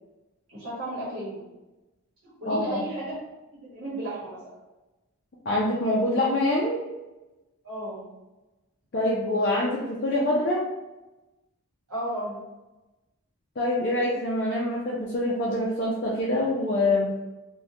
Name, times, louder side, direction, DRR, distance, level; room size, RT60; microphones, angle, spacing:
voice 1, 0.5-1.4 2.2-3.1 3.7-4.4 7.6-8.1 11.9-12.4, right 1 dB, 75° right, -10 dB, 1.2 m, -33 dB
voice 2, 2.5-2.8 5.5-6.8 8.9-10.7 13.6-17.1, left 1 dB, 45° left, -5 dB, 0.4 m, -25 dB
3.4 x 2.2 x 2.7 m, 1.1 s
head